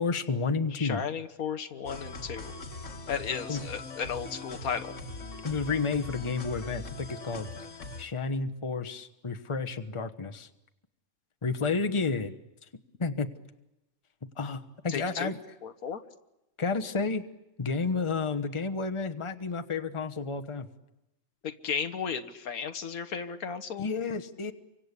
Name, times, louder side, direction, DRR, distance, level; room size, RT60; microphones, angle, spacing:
voice 1, 0.0-1.0 3.5-3.6 5.4-7.5 8.0-10.5 11.4-12.4 13.0-13.3 14.4-15.4 16.6-17.2 17.6-20.7 23.8-24.5, left 4 dB, 25° left, 7 dB, 1.1 m, -31 dB
voice 2, 0.7-2.5 3.1-4.9 14.9-15.3 15.6-16.0 21.4-23.9, left 7 dB, 85° left, 10 dB, 1.7 m, -34 dB
sound 1, 1.9-8.1, left 2 dB, 60° left, 1.9 m, -41 dB
29.0 x 24.5 x 8.4 m, 0.92 s
omnidirectional pair, 1.5 m